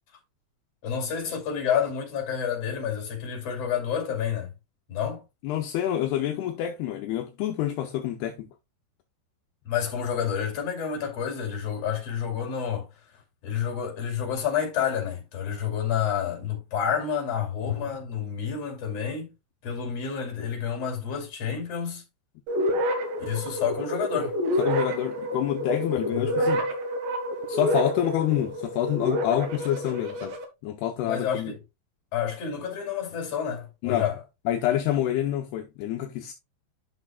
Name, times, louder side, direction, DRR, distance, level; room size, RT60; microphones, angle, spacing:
voice 1, 0.8-4.5 4.9-5.2 9.6-12.9 13.4-19.3 19.6-22.0 23.2-24.3 26.1-26.5 31.0-31.6 32.1-34.1, left 8 dB, 40° left, 3.1 m, -29 dB
voice 2, 5.4-8.5 24.6-26.7 27.5-30.4 30.6-31.5 33.8-34.1 34.5-36.3, left 11 dB, 80° left, 2.4 m, -27 dB
sound 1, 22.5-30.4, equal, 60° right, 2.8 m, -28 dB
11.0 x 6.1 x 2.2 m
omnidirectional pair, 5.3 m